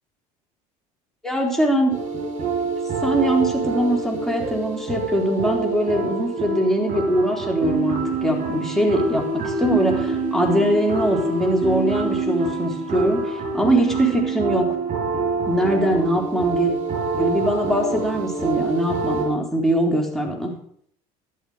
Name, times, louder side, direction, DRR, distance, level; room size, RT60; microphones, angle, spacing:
voice 1, 1.2-2.0 3.0-14.7 15.5-16.7 17.2-20.5, right 1 dB, ahead, 0 dB, 3.9 m, -22 dB
sound 1, 1.9-19.3, right 3 dB, 40° right, 6.6 m, -26 dB
13.5 x 11.0 x 5.1 m, 0.63 s
hypercardioid pair, 80°, 19 cm